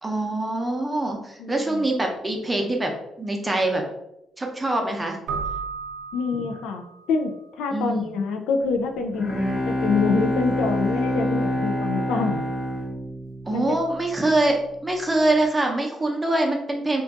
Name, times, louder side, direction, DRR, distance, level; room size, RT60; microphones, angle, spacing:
voice 1, 0.0-2.9 3.2-3.8 4.4-5.2 6.3-6.4 7.7-8.1 13.5-17.0, right 2 dB, 15° right, 2 dB, 0.6 m, -24 dB
voice 2, 1.4-1.9 6.1-6.8 7.1-7.3 7.6-12.4 13.5-13.8, left 4 dB, 90° left, 5 dB, 0.3 m, -26 dB
Keyboard (musical), 5.3-7.1, right 5 dB, 85° right, 0.4 m, -33 dB
Bowed string instrument, 8.8-14.3, left 1 dB, 45° left, 0.7 m, -26 dB
2.5 x 2.3 x 3.6 m, 0.86 s
cardioid pair, 90°, 0 cm